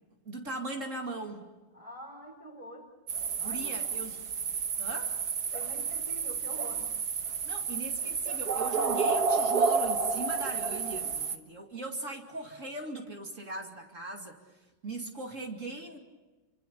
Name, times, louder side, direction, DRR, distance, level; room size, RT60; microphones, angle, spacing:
voice 1, 0.2-1.5 3.4-4.2 4.8-5.1 7.4-14.4 14.8-16.0, right 2 dB, 45° right, 2 dB, 2.9 m, -39 dB
voice 2, 1.7-2.9 3.4-3.9 5.5-6.9, right 1 dB, 20° right, -1 dB, 3.6 m, -46 dB
sound 1, 3.1-11.4, right 5 dB, 60° right, 1.8 m, -30 dB
30.0 x 25.0 x 7.0 m, 1.2 s
omnidirectional pair, 1.9 m